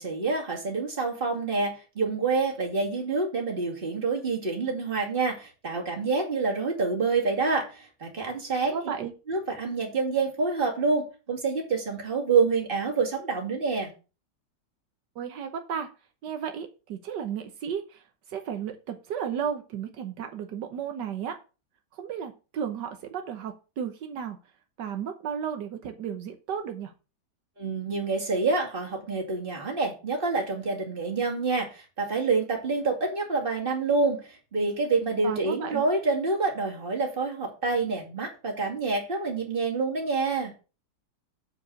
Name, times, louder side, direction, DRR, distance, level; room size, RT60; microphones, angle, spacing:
voice 1, 0.0-8.8 9.3-13.9 27.6-40.5, right 4 dB, 30° right, 0 dB, 2.6 m, -27 dB
voice 2, 8.6-9.1 15.1-15.9 16.2-21.4 21.9-24.4 24.8-26.9 35.2-35.8, right 8 dB, 85° right, 6 dB, 1.6 m, -34 dB
8.3 x 4.7 x 6.4 m, 0.32 s
omnidirectional pair, 1.8 m